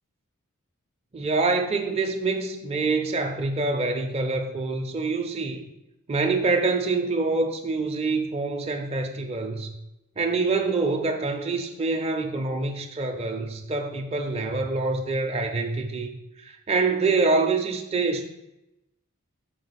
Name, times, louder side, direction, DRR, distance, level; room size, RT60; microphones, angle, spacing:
voice 1, 1.1-5.6 6.1-9.7 10.2-16.1 16.4-18.3, right 3 dB, 30° right, 3 dB, 0.5 m, -26 dB
6.3 x 4.6 x 4.0 m, 0.92 s
head